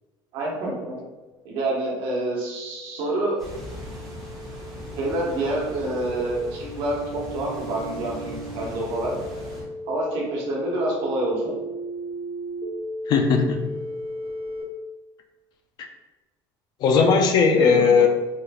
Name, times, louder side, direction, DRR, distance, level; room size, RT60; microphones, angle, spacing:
voice 1, 0.3-1.0 1.4-3.4 5.0-9.2 9.9-11.5 17.4-18.1, right 1 dB, 55° right, -3 dB, 1.1 m, -27 dB
sound 1, 1.4-14.6, equal, 60° left, 1.0 m, -36 dB
sound 2, 3.4-9.6, left 1 dB, ahead, 1.2 m, -39 dB
voice 2, 13.1-13.6 16.8-18.1, left 5 dB, 40° left, 4 dB, 0.4 m, -17 dB
4.2 x 3.1 x 2.3 m, 1.1 s
cardioid pair, 170°, 10 cm